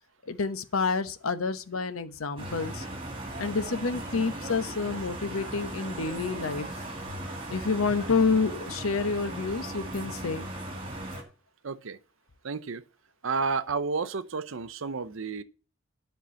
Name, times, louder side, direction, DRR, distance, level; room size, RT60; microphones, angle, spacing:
voice 1, 0.2-2.9 3.4-6.7 7.5-10.5, left 4 dB, 85° left, 0.9 m, -28 dB
sound 1, 2.4-11.2, right 1 dB, 25° right, 2.4 m, -38 dB
voice 2, 11.6-12.0 12.4-12.8 13.2-15.4, right 4 dB, 70° right, 0.6 m, -31 dB
10.0 x 4.6 x 7.0 m
head